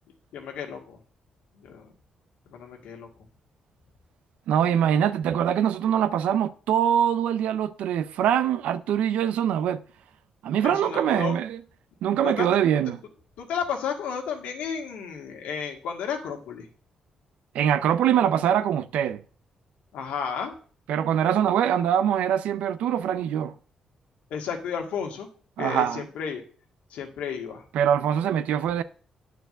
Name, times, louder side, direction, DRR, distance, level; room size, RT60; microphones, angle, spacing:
voice 1, 0.3-1.0 1.6-1.9 2.5-3.1 10.6-11.4 12.2-12.5 13.4-16.7 19.9-20.6 24.3-25.3 25.6-26.4 26.9-27.6, left 7 dB, 90° left, 1.8 m, -32 dB
voice 2, 4.5-9.8 10.4-11.6 12.0-13.0 17.5-19.2 20.9-23.5 25.6-26.0 27.7-28.8, right 9 dB, 90° right, 0.4 m, -23 dB
9.2 x 4.6 x 7.6 m
cardioid pair, 85°, 2 cm